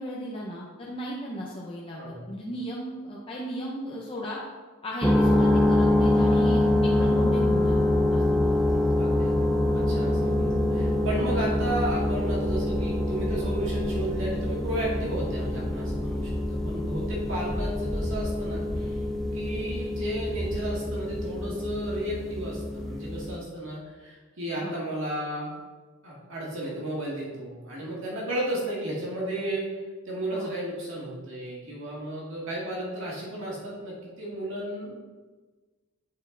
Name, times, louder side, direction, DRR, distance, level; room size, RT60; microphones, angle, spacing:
voice 1, 0.0-4.4 4.8-7.8 8.1-8.8 24.6-24.8 30.3-30.5, equal, 25° left, -5 dB, 0.7 m, -36 dB
voice 2, 1.9-2.3 5.8-6.1 9.0-19.0 19.3-25.5 26.0-29.7 30.1-35.1, right 1 dB, 60° right, -5 dB, 2.1 m, -33 dB
sound 1, 5.0-23.4, left 1 dB, ahead, 0.3 m, -25 dB
8.4 x 4.3 x 3.9 m, 1.3 s
head